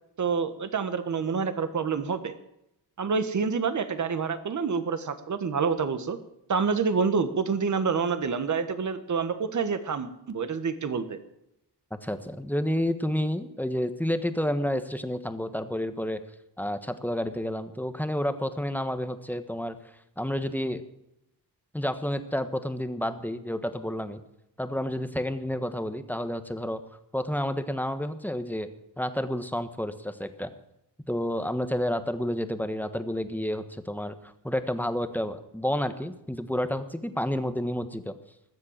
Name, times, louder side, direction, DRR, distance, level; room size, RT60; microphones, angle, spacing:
voice 1, 0.2-2.3 3.0-6.2 6.5-11.2, right 5 dB, 45° right, 10 dB, 1.4 m, -27 dB
voice 2, 11.9-16.2 16.6-19.8 20.2-20.8 21.7-24.2 24.6-26.8 27.1-28.7 29.0-30.5 31.1-38.1, equal, 5° left, 9 dB, 1.2 m, -30 dB
20.5 x 7.6 x 7.4 m, 0.82 s
cardioid pair, 100°, 42 cm